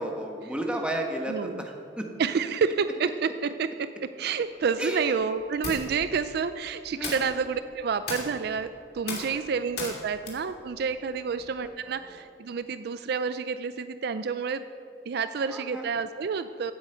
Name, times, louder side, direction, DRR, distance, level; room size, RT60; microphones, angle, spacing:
voice 1, 0.0-2.1 4.8-5.2 7.0-7.3 11.8-12.1 15.4-15.9, right 1 dB, 5° right, 2 dB, 1.2 m, -33 dB
voice 2, 1.3-1.6 2.2-14.7 15.1-16.7, right 5 dB, 60° right, 12 dB, 0.4 m, -29 dB
sound 1, 4.5-11.7, left 3 dB, 60° left, 2.5 m, -40 dB
16.0 x 8.1 x 5.7 m, 2.4 s
head